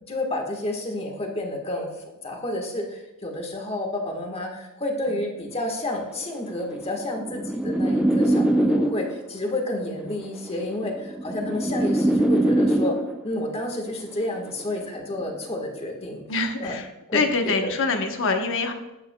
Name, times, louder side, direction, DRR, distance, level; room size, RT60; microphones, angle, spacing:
voice 1, 0.1-1.9 2.2-12.9 13.2-16.2 16.6-16.7 17.1-17.7, left 1 dB, 30° left, 2 dB, 1.4 m, -30 dB
sound 1, 6.4-9.3 10.4-13.3 14.4-14.7, right 1 dB, 5° right, 0.3 m, -23 dB
voice 2, 16.3-18.7, left 3 dB, 60° left, 5 dB, 1.0 m, -25 dB
12.0 x 8.9 x 2.2 m, 0.99 s
head